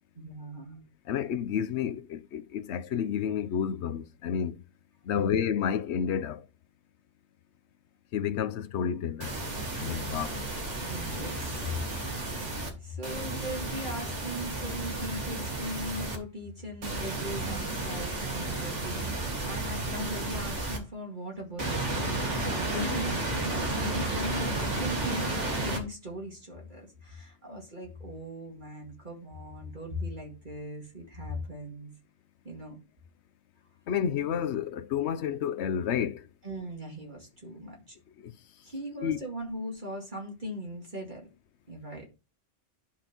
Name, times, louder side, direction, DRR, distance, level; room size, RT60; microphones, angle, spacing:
voice 1, 0.2-0.8 5.2-5.4 10.9-11.8 12.8-31.9 32.4-32.8 36.4-38.0 38.6-41.3 41.7-42.1, equal, 40° right, 2.3 m, -39 dB
voice 2, 1.1-4.6 5.1-6.4 8.1-9.3 9.8-10.4 33.9-36.2 38.2-38.3 39.0-39.2, left 8 dB, 70° left, 0.9 m, -30 dB
sound 1, 9.2-12.7 13.0-16.2 16.8-20.8 21.6-25.8, right 2 dB, 75° right, 2.4 m, -32 dB
11.0 x 5.9 x 3.0 m
omnidirectional pair, 1.2 m